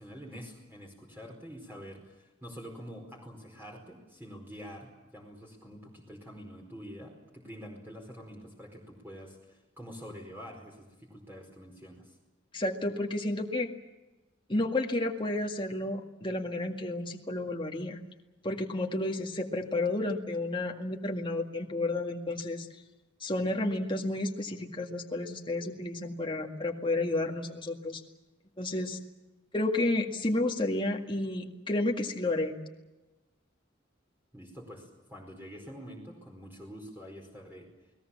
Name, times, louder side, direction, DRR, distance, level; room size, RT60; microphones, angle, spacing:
voice 1, 0.0-12.2 34.3-37.7, equal, 10° right, 0 dB, 4.8 m, -46 dB
voice 2, 12.5-13.7 14.5-18.0 18.4-22.7 23.2-28.0 28.6-29.0 29.5-32.5, left 2 dB, 25° left, 2 dB, 2.0 m, -31 dB
29.5 x 20.0 x 7.3 m, 1.1 s
head